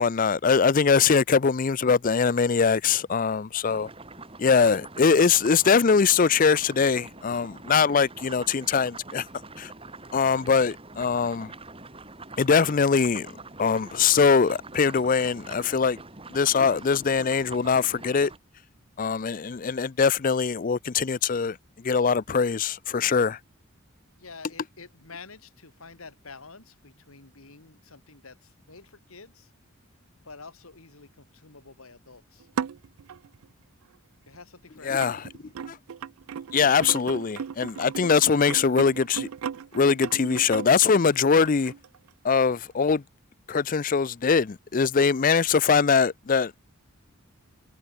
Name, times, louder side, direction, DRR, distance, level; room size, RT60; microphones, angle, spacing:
voice 1, 0.0-3.9 4.4-9.3 9.6-9.7 10.1-11.5 12.4-13.3 13.6-16.0 16.3-18.3 19.0-23.4 34.8-35.3 35.7-35.8 36.5-39.3 39.7-41.7 42.2-43.0 43.5-46.5, left 5 dB, 40° left, 0.5 m, -22 dB
sound 1, 3.7-18.4, right 3 dB, 25° right, 6.3 m, -44 dB
voice 2, 24.2-29.5 30.2-32.5 34.3-35.2, left 4 dB, 85° left, 2.5 m, -48 dB
sound 2, 32.4-33.5 34.3-34.4 35.0-42.6 42.9-43.0, right 7 dB, 85° right, 0.4 m, -36 dB
head